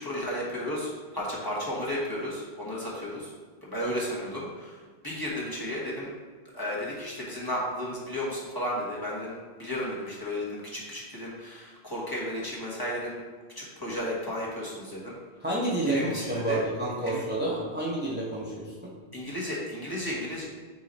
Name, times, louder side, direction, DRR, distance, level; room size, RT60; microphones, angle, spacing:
voice 1, 0.0-3.3 3.6-4.8 5.0-6.1 6.5-13.2 13.5-15.2 15.9-16.6 17.0-17.2 19.1-20.5, left 1 dB, 20° left, -6 dB, 1.3 m, -33 dB
voice 2, 15.4-18.7, right 1 dB, 10° right, -5 dB, 0.7 m, -29 dB
8.2 x 3.1 x 4.1 m, 1.5 s
omnidirectional pair, 1.1 m